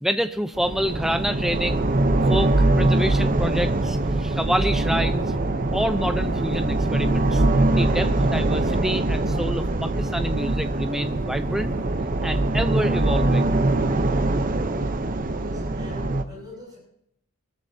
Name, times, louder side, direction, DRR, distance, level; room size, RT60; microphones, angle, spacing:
voice 1, 0.0-1.9 2.2-5.4 5.7-7.4 7.8-11.7 12.2-13.6, equal, ahead, 9 dB, 0.6 m, -27 dB
sound 1, 0.5-16.2, right 2 dB, 35° right, 0.8 m, -23 dB
sound 2, 5.0-14.9, right 3 dB, 80° right, 2.2 m, -39 dB
voice 2, 15.4-16.8, left 1 dB, 20° right, -2 dB, 7.2 m, -42 dB
23.0 x 14.0 x 2.8 m, 0.75 s
head